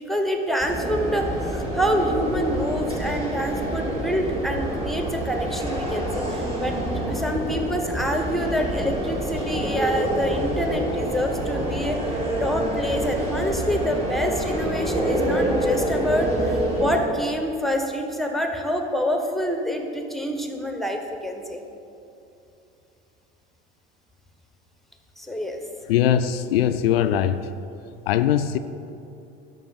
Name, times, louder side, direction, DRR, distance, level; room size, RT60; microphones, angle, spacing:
voice 1, 0.0-6.7 7.1-12.0 12.4-21.6 25.2-25.6, equal, ahead, 4 dB, 1.2 m, -26 dB
sound 1, 0.6-17.0, right 1 dB, 20° right, 2.7 m, -27 dB
voice 2, 25.9-27.5 28.1-28.6, left 10 dB, 65° left, 11 dB, 0.6 m, -21 dB
12.0 x 5.8 x 7.3 m, 2.7 s
figure-of-eight pair, 70°, 32 cm